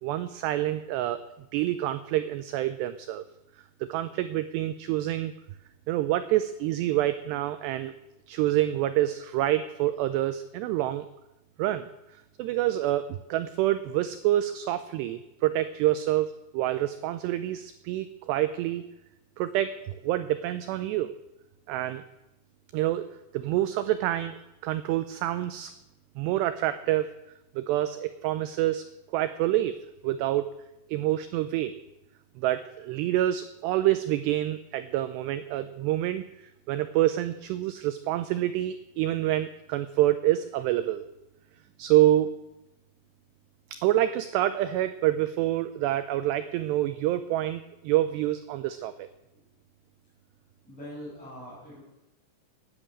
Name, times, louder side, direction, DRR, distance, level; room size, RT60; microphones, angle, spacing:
voice 1, 0.0-1.2 1.5-3.2 3.8-5.3 5.9-7.9 8.3-11.1 11.6-11.9 12.1-18.8 19.4-21.1 21.7-22.0 22.7-23.1 23.3-25.7 26.2-27.1 27.6-28.8 29.1-29.8 30.0-30.5 30.9-31.7 32.4-36.2 36.7-41.1 41.8-42.4 43.7-49.1, right 14 dB, 90° right, 12 dB, 2.4 m, -27 dB
voice 2, 49.2-49.6 50.6-51.8, equal, ahead, -7 dB, 5.5 m, -43 dB
13.5 x 10.0 x 8.8 m, 0.94 s
omnidirectional pair, 5.6 m